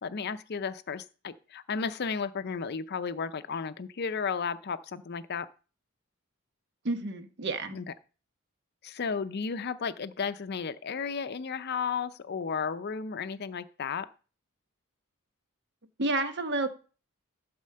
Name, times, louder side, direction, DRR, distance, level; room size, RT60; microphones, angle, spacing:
voice 1, 0.0-5.5 7.7-7.9 8.8-14.1, left 5 dB, 50° left, 13 dB, 0.5 m, -33 dB
voice 2, 6.8-7.8 16.0-16.7, right 2 dB, 55° right, 9 dB, 1.0 m, -30 dB
12.0 x 4.3 x 6.6 m, 0.37 s
head